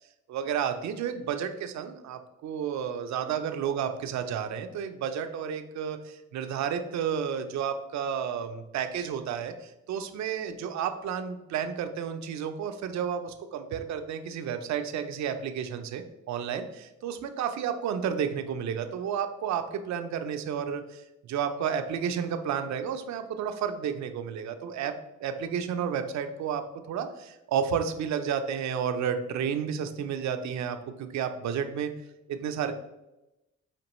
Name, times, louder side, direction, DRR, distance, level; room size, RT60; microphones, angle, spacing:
voice 1, 0.3-21.0 21.3-24.9 25.2-31.9 32.3-32.7, right 8 dB, 65° right, 8 dB, 0.5 m, -31 dB
5.1 x 2.9 x 3.0 m, 0.94 s
cardioid pair, 90°, 30 cm